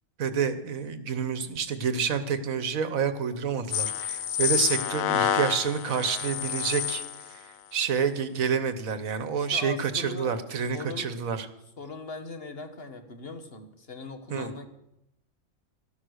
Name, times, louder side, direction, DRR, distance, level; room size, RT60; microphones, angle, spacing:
voice 1, 0.2-7.0 7.3-7.4 7.7-11.5 14.3-14.5, right 6 dB, 75° right, 12 dB, 1.5 m, -28 dB
sound 1, 3.7-7.3, left 9 dB, 85° left, 1.2 m, -28 dB
voice 2, 9.3-10.4 10.7-11.1 11.8-14.7, left 3 dB, 45° left, 7 dB, 1.5 m, -40 dB
13.0 x 12.5 x 6.4 m, 0.83 s
omnidirectional pair, 1.4 m